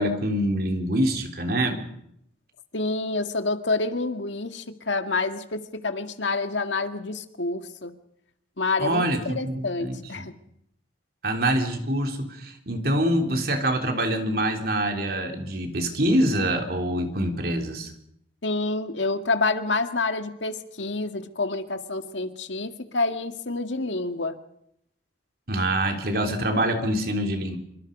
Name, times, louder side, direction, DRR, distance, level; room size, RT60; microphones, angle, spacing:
voice 1, 0.0-1.9 8.8-10.3 11.2-17.9 25.5-27.6, right 1 dB, 55° right, 4 dB, 3.5 m, -25 dB
voice 2, 2.7-7.9 8.6-10.3 18.4-24.4, left 3 dB, 85° left, 7 dB, 1.9 m, -28 dB
26.0 x 24.5 x 5.4 m, 0.75 s
head